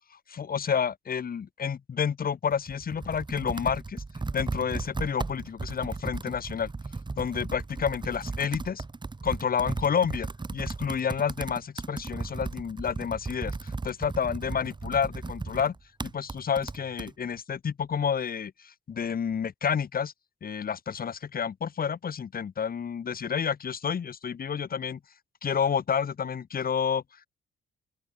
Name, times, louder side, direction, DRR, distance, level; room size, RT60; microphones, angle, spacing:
voice 1, 0.1-4.0 4.3-6.7 7.2-8.8 9.2-15.7 16.0-20.1 20.4-25.0 25.4-27.3, left 7 dB, 50° left, 4.2 m, -30 dB
Computer keyboard, 2.5-17.1, right 3 dB, 25° right, 3.4 m, -36 dB
open air
cardioid pair, 90°, 20 cm